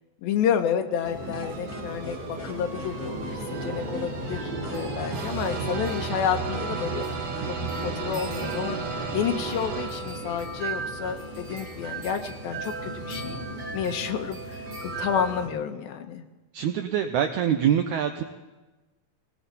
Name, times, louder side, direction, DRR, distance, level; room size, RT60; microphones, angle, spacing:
voice 1, 0.2-7.1 7.8-8.8 9.1-13.4 13.7-16.3, left 8 dB, 85° left, 6 dB, 2.9 m, -30 dB
sound 1, 1.0-15.5, right 1 dB, 35° right, 2.0 m, -36 dB
sound 2, 1.0-10.5, right 5 dB, 60° right, 2.8 m, -35 dB
sound 3, 1.3-8.9, equal, 5° left, 1.3 m, -43 dB
voice 2, 16.5-18.2, right 9 dB, 85° right, 7 dB, 1.7 m, -24 dB
19.0 x 18.0 x 4.1 m, 1.1 s
omnidirectional pair, 4.2 m